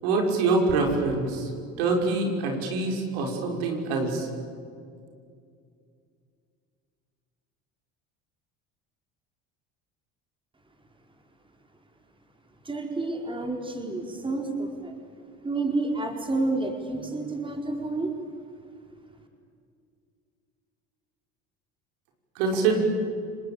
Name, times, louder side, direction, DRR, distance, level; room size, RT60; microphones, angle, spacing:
voice 1, 0.0-1.5 1.8-4.3 22.4-22.8, right 3 dB, 85° right, 2 dB, 5.7 m, -25 dB
voice 2, 12.6-15.0 15.4-18.1, right 2 dB, 15° right, 3 dB, 4.8 m, -29 dB
30.0 x 20.5 x 8.7 m, 2.3 s
supercardioid pair, 100°, 31 cm